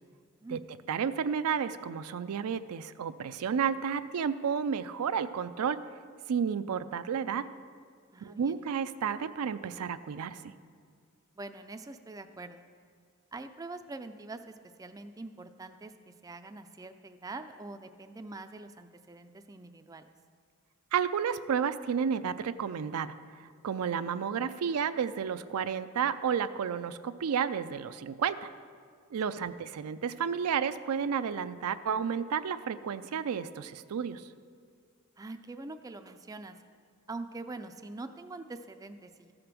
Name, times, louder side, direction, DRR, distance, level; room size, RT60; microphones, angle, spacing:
voice 1, 0.9-5.8 6.3-7.5 8.2-10.4 20.9-23.1 23.6-28.5 29.1-34.3, right 7 dB, 85° right, 12 dB, 0.4 m, -31 dB
voice 2, 8.1-8.6 11.4-12.6 13.3-20.1 29.3-29.4 35.2-36.6 37.1-39.3, right 2 dB, 15° right, 8 dB, 0.3 m, -44 dB
14.0 x 5.1 x 6.0 m, 2.1 s
head